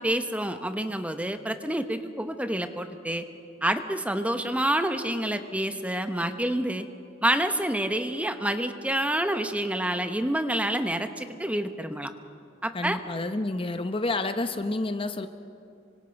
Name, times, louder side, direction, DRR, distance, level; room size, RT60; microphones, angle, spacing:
voice 1, 0.0-3.3 3.6-6.9 7.2-12.1 12.6-13.0, right 1 dB, 5° right, 8 dB, 0.9 m, -28 dB
voice 2, 12.7-15.3, left 2 dB, 25° left, 9 dB, 0.7 m, -29 dB
26.5 x 24.5 x 5.3 m, 2.6 s
head